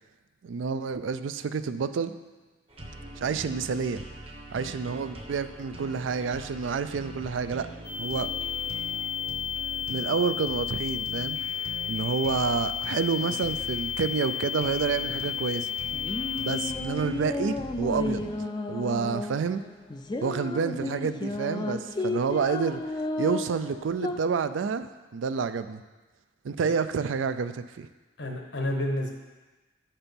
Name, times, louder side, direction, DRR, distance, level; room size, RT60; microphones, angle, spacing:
voice 1, 0.4-2.1 3.1-4.0 4.5-7.7 8.0-8.3 9.9-11.5 11.9-15.7 16.4-18.2 18.7-19.6 20.2-22.8 23.2-25.8 26.4-27.9, right 5 dB, 80° right, 11 dB, 0.4 m, -29 dB
sound 1, 2.7-18.3, right 1 dB, 30° right, 0.8 m, -43 dB
sound 2, 7.8-16.7, left 9 dB, 45° left, 0.8 m, -32 dB
sound 3, 15.7-24.2, left 2 dB, 25° left, 0.3 m, -33 dB
voice 2, 28.2-29.1, left 1 dB, 75° left, 2 dB, 1.1 m, -30 dB
8.8 x 4.4 x 5.2 m, 1.2 s
head